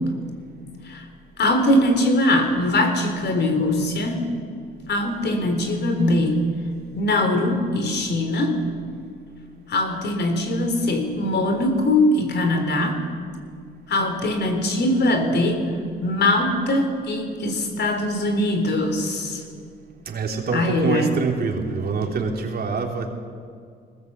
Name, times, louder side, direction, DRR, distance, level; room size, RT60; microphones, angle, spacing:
voice 1, 1.4-4.3 4.9-6.4 7.0-8.6 9.7-13.0 13.9-15.7 16.0-19.4 20.5-21.1, left 1 dB, 60° left, 6 dB, 3.9 m, -21 dB
voice 2, 20.1-23.1, right 4 dB, 50° right, 2 dB, 3.4 m, -25 dB
21.5 x 19.0 x 8.2 m, 2.2 s
cardioid pair, 90°, 20 cm